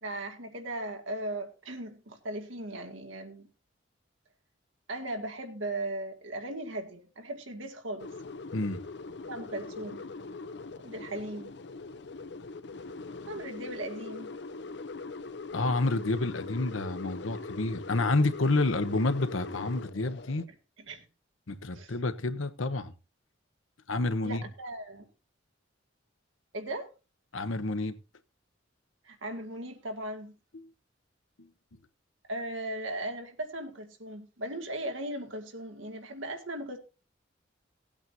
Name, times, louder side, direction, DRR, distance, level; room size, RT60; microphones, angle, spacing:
voice 1, 0.0-3.5 4.9-8.1 9.3-10.0 10.8-11.5 13.3-14.3 20.9-21.1 21.7-21.9 24.2-25.1 26.5-26.9 29.0-30.3 32.3-36.8, right 1 dB, 80° right, 2.1 m, -37 dB
sound 1, 8.0-20.4, left 3 dB, 60° left, 0.6 m, -42 dB
voice 2, 15.5-20.5 21.5-22.9 23.9-24.4 27.3-28.0 30.5-30.7 31.4-31.5, left 2 dB, 85° left, 1.0 m, -29 dB
18.0 x 8.7 x 2.7 m
head